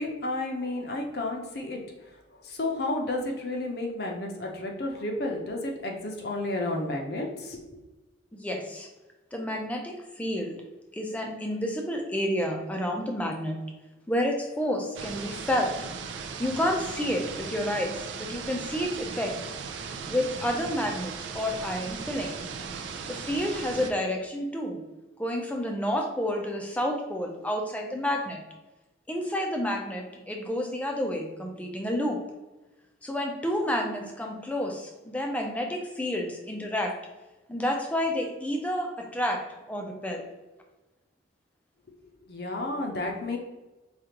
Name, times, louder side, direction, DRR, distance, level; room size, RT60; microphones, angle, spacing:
voice 1, 0.0-1.8 2.4-7.6 42.3-43.4, left 2 dB, 55° left, 1 dB, 0.6 m, -31 dB
voice 2, 8.3-8.9 9.3-10.6 10.9-13.6 14.1-15.7 16.4-19.3 20.1-22.5 23.1-24.8 25.2-28.4 29.1-32.2 33.0-36.9 37.5-39.4 39.7-40.2, equal, 5° left, 1 dB, 0.4 m, -30 dB
sound 1, 14.9-23.9, right 5 dB, 70° right, 0.4 m, -37 dB
5.0 x 2.4 x 2.9 m, 1.1 s
head